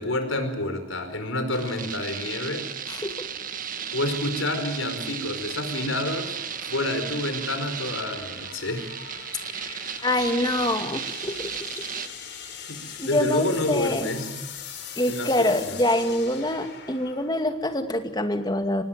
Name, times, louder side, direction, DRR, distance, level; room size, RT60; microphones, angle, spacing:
voice 1, 0.0-2.7 3.9-8.9 12.6-14.5 15.0-15.8, left 1 dB, 80° left, 7 dB, 4.9 m, -29 dB
sound 1, 1.5-12.1, right 8 dB, 45° right, 1.5 m, -35 dB
sound 2, 2.8-18.2, left 7 dB, 55° left, 4.8 m, -42 dB
voice 2, 9.5-11.5 13.0-14.1 15.0-18.8, left 1 dB, 20° left, 7 dB, 2.2 m, -26 dB
26.0 x 19.0 x 9.3 m, 0.97 s
head